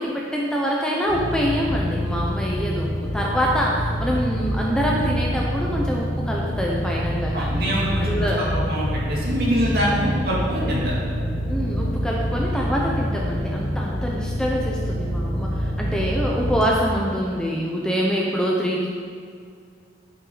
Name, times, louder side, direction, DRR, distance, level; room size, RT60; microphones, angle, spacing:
voice 1, 0.0-7.7 8.0-8.4 11.5-18.9, equal, 5° left, -3 dB, 0.8 m, -25 dB
sound 1, 1.1-16.7, equal, 55° left, 2.1 m, -26 dB
voice 2, 7.3-10.9, equal, 55° right, -5 dB, 2.4 m, -25 dB
9.6 x 8.3 x 4.0 m, 2.2 s
head